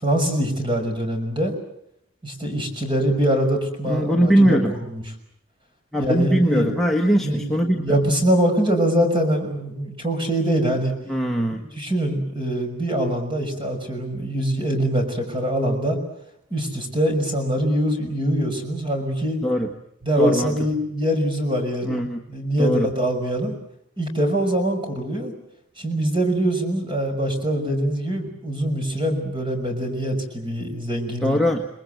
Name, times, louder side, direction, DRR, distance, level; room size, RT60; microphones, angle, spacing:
voice 1, 0.0-1.5 2.2-5.0 6.0-6.8 7.2-10.9 11.5-16.0 16.5-19.4 20.0-23.6 24.0-25.3 25.8-31.4, right 1 dB, 25° right, 4 dB, 5.8 m, -23 dB
voice 2, 3.8-4.7 5.9-7.8 11.1-11.6 19.4-19.7 20.2-20.6 21.8-22.3 22.6-22.9 31.2-31.7, equal, ahead, 0 dB, 1.4 m, -20 dB
29.5 x 21.0 x 7.8 m, 0.76 s
head